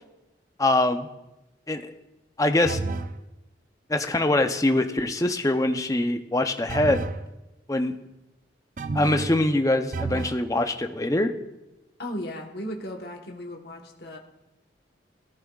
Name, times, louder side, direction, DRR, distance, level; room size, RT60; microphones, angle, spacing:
voice 1, 0.6-1.1 1.7-1.9 2.4-2.8 3.9-7.1 7.7-8.0 8.9-11.3, left 2 dB, 20° left, 7 dB, 0.6 m, -23 dB
sound 1, 2.7-3.2 6.7-7.2 8.8-9.4 9.9-10.4, right 3 dB, 45° right, 0.5 m, -30 dB
voice 2, 12.0-14.2, equal, 55° left, 1 dB, 1.2 m, -36 dB
19.5 x 14.0 x 2.4 m, 0.98 s
head